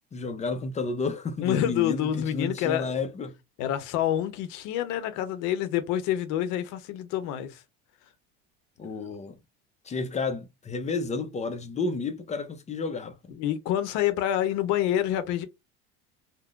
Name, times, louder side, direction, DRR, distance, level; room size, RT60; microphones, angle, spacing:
voice 1, 0.1-3.4 8.8-9.4 9.8-13.2, left 4 dB, 20° left, 0.5 m, -31 dB
voice 2, 1.4-3.0 3.6-7.6 13.4-15.5, left 11 dB, 65° left, 0.8 m, -27 dB
3.6 x 2.1 x 2.4 m
supercardioid pair, 105°, 31 cm